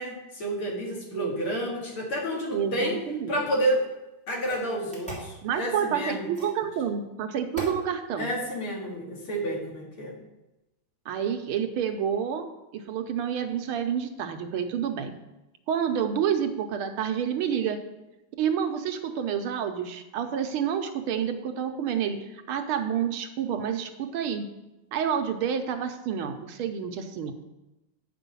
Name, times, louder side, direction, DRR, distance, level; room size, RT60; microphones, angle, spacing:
voice 1, 0.0-3.0 3.3-3.8 4.3-6.3 8.1-10.2, right 1 dB, 70° left, -2 dB, 2.9 m, -30 dB
voice 2, 2.5-3.4 5.4-8.3 11.1-12.5 12.7-15.2 15.7-17.8 18.4-24.5 24.9-27.3, right 8 dB, 75° right, 6 dB, 1.6 m, -29 dB
sound 1, 3.7-3.8 4.4-5.3 6.3-6.6 7.5-7.8, right 1 dB, 5° left, 2.7 m, -38 dB
9.1 x 6.0 x 5.5 m, 0.99 s
omnidirectional pair, 2.4 m